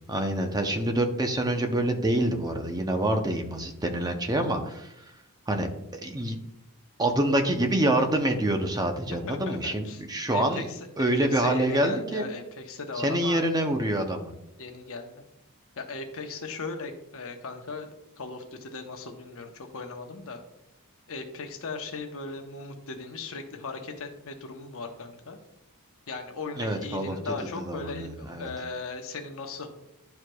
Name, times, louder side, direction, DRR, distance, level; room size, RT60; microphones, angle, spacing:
voice 1, 0.1-5.0 5.5-5.7 6.0-6.4 7.0-10.7 11.0-12.3 13.0-14.3 26.6-27.2 27.6-28.5, right 1 dB, 15° right, 5 dB, 0.6 m, -26 dB
voice 2, 9.3-10.0 10.3-13.5 14.6-15.2 15.8-20.4 21.1-25.4 26.1-29.7, left 3 dB, 65° left, 4 dB, 0.9 m, -38 dB
11.5 x 4.7 x 2.3 m, 0.86 s
head